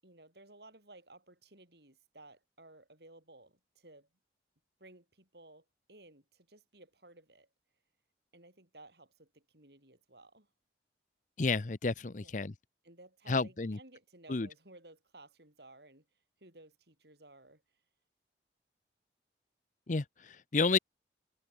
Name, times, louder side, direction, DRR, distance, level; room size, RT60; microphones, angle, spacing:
voice 1, 0.0-4.1 4.8-7.5 8.3-10.5 12.1-12.3 12.8-16.1 16.4-17.6, right 2 dB, 65° right, 7.8 m, -57 dB
voice 2, 11.4-12.5 13.3-13.8 14.3-14.5 19.9-20.8, left 4 dB, 45° left, 0.7 m, -31 dB
head